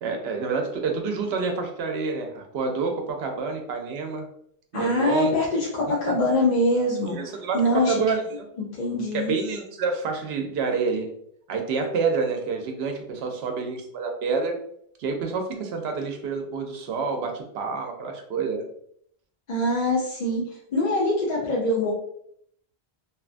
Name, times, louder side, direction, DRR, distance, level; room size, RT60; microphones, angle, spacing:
voice 1, 0.0-4.3 4.7-5.3 5.9-6.0 7.1-8.2 9.1-11.1 11.5-14.5 15.0-18.6, right 4 dB, 85° right, 3 dB, 0.8 m, -28 dB
voice 2, 4.7-8.0 8.6-9.3 19.5-20.4 20.7-21.9, left 1 dB, 50° left, -5 dB, 0.6 m, -24 dB
2.7 x 2.2 x 2.4 m, 0.68 s
omnidirectional pair, 1.0 m